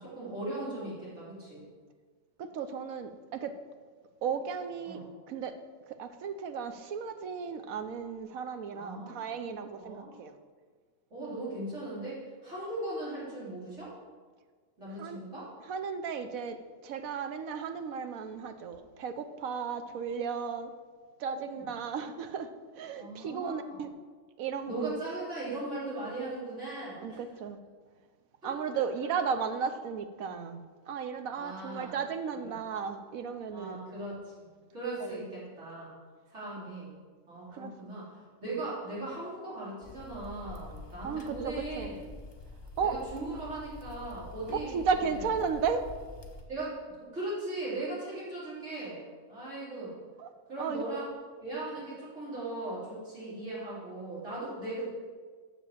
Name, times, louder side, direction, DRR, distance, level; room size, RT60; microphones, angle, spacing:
voice 1, 0.0-1.6 4.8-5.1 8.7-9.2 9.8-10.2 11.1-13.9 14.8-15.5 21.3-21.7 23.0-23.8 24.7-27.2 28.4-28.8 31.3-31.9 32.3-32.5 33.5-34.2 34.7-35.9 36.3-36.9 37.3-38.1 38.4-42.0 42.8-44.8 45.0-45.2 46.5-46.8 47.1-49.9 50.5-51.1 51.4-54.9, right 2 dB, 60° right, -8 dB, 3.8 m, -38 dB
voice 2, 2.4-3.5 4.2-5.0 5.3-5.6 5.9-10.3 15.0-15.2 15.7-16.6 16.8-20.7 21.2-22.5 22.8-23.9 24.4-24.9 27.0-27.6 28.4-33.8 35.0-35.2 37.5-37.9 41.0-41.9 42.8-43.0 44.7-45.9 50.2-50.3 50.6-50.8, right 6 dB, 85° right, 9 dB, 1.2 m, -34 dB
sound 1, 39.8-46.4, left 3 dB, 25° left, 0.8 m, -46 dB
7.1 x 6.5 x 7.3 m, 1.5 s
omnidirectional pair, 1.4 m